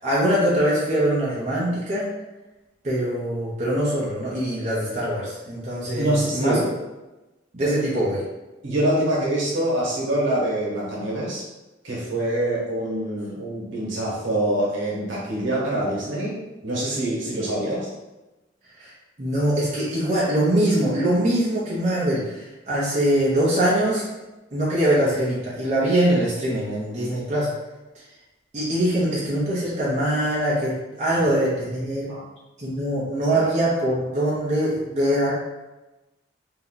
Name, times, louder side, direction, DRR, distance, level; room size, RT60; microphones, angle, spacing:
voice 1, 0.0-2.1 2.8-6.6 7.5-8.2 18.8-18.9 19.2-24.0 24.5-27.5 28.5-32.1 32.6-35.3, right 1 dB, 35° right, -7 dB, 0.7 m, -23 dB
voice 2, 6.0-6.7 7.6-7.7 8.6-11.4 11.8-16.3 16.6-17.9 31.1-31.2 32.1-32.2 33.3-33.4, right 1 dB, 85° right, -6 dB, 1.2 m, -25 dB
2.7 x 2.2 x 3.8 m, 1.1 s
head